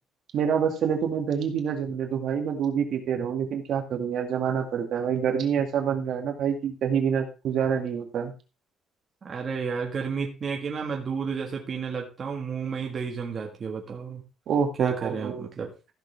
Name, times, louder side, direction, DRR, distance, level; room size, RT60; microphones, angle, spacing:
voice 1, 0.3-8.3 14.5-15.5, right 7 dB, 55° right, 4 dB, 2.0 m, -27 dB
voice 2, 9.2-14.2 14.8-15.7, right 5 dB, 30° right, 0 dB, 1.6 m, -31 dB
15.0 x 6.6 x 3.4 m, 0.30 s
cardioid pair, 160°, 0 cm